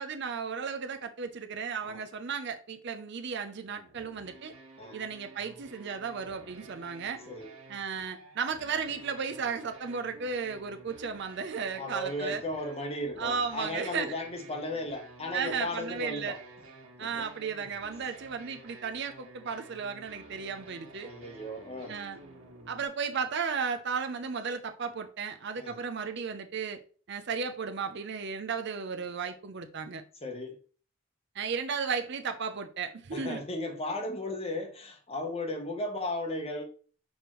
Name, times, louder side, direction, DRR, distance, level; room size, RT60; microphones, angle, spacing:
voice 1, 0.0-4.5 4.9-7.2 7.7-12.4 13.2-14.1 15.3-16.4 17.0-21.1 21.9-22.2 22.7-26.8 27.1-30.0 31.3-33.4 34.3-34.4, right 5 dB, 55° right, 0.6 m, -34 dB
sound 1, 3.7-22.9, right 2 dB, 80° right, 1.6 m, -52 dB
voice 2, 11.8-16.4 17.2-17.3 21.0-22.0 25.6-25.8 30.2-30.6 33.1-36.6, left 1 dB, 30° left, 1.0 m, -35 dB
6.4 x 5.1 x 3.1 m
head